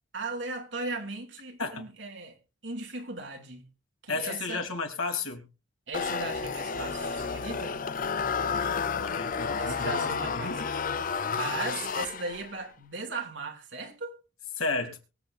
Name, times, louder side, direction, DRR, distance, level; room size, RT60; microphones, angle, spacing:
voice 1, 0.1-2.4 2.6-3.7 4.0-4.6 5.9-7.8 9.6-10.6 11.0-14.1, right 3 dB, 60° right, 2.6 m, -37 dB
voice 2, 4.1-5.5 8.4-10.7 14.6-15.0, left 3 dB, 85° left, 3.2 m, -33 dB
sound 1, 5.9-12.6, left 5 dB, 40° left, 0.5 m, -31 dB
23.0 x 7.9 x 2.6 m
head